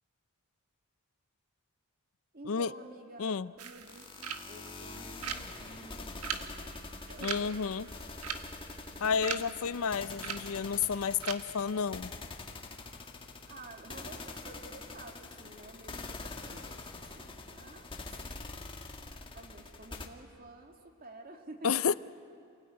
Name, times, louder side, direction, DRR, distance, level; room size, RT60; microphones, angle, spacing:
voice 1, 2.3-7.6 8.9-9.6 13.5-18.0 19.3-22.0, right 2 dB, 40° right, 4 dB, 2.3 m, -51 dB
voice 2, 3.2-3.5 7.2-7.8 9.0-12.1 21.6-22.0, left 6 dB, 65° left, 17 dB, 0.5 m, -31 dB
sound 1, 3.6-11.3, right 7 dB, 80° right, 1.5 m, -42 dB
sound 2, 3.9-20.1, left 3 dB, 25° left, 1.6 m, -45 dB
27.5 x 17.5 x 9.7 m, 2.6 s
head